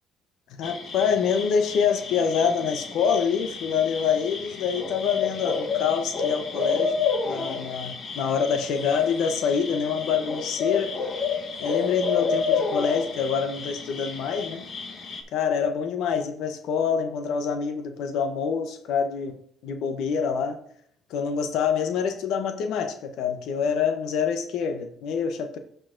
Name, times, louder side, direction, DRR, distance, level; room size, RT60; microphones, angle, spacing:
voice 1, 0.5-6.9 7.2-11.0 11.6-14.7 15.3-19.4 19.6-20.6 21.1-25.6, left 6 dB, 80° left, 7 dB, 0.6 m, -26 dB
sound 1, 0.6-15.2, left 5 dB, 45° left, 1.0 m, -30 dB
13.5 x 4.6 x 2.5 m, 0.64 s
cardioid pair, 115°, 0 cm